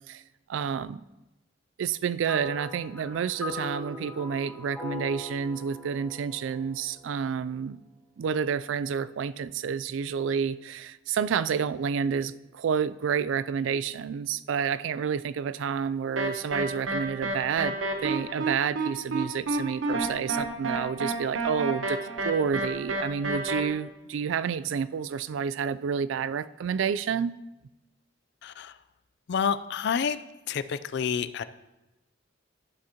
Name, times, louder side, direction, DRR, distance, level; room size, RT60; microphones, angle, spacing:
voice 1, 0.5-1.0 1.8-7.8 8.2-17.8 18.0-27.4, right 7 dB, 70° right, 16 dB, 0.3 m, -29 dB
sound 1, 2.3-7.8, left 2 dB, 5° left, 1.0 m, -41 dB
sound 2, 16.2-23.6, right 2 dB, 85° right, 1.0 m, -30 dB
voice 2, 28.4-28.8 29.3-30.2 30.5-31.4, left 7 dB, 60° left, 14 dB, 0.4 m, -28 dB
11.5 x 7.8 x 2.9 m, 0.99 s
head